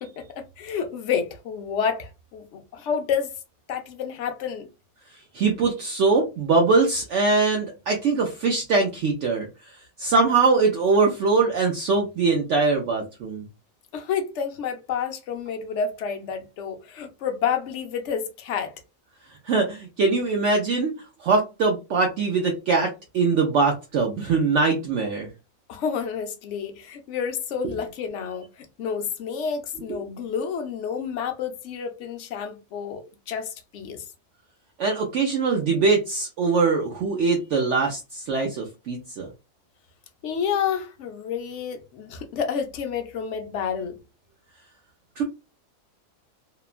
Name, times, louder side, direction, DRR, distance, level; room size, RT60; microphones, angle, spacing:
voice 1, 0.0-3.3 3.7-4.7 13.9-18.7 25.7-34.0 40.2-44.0, left 7 dB, 65° left, 0.8 m, -29 dB
voice 2, 5.3-9.5 10.0-13.4 19.5-20.9 21.2-25.3 34.8-39.3 45.2-45.3, right 4 dB, 65° right, 0.8 m, -22 dB
2.9 x 2.2 x 2.3 m
omnidirectional pair, 1.5 m